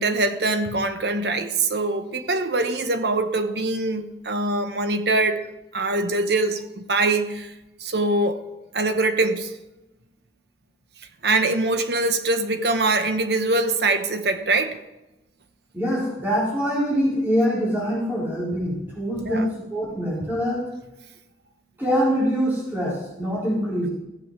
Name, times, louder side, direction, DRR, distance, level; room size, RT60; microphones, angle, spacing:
voice 1, 0.0-7.5 7.8-8.4 8.7-9.6 11.2-14.8 19.2-19.5, right 2 dB, 65° right, 1.1 m, -23 dB
voice 2, 15.7-20.6 21.8-23.9, equal, 10° right, 4.5 m, -24 dB
15.0 x 7.8 x 6.1 m
head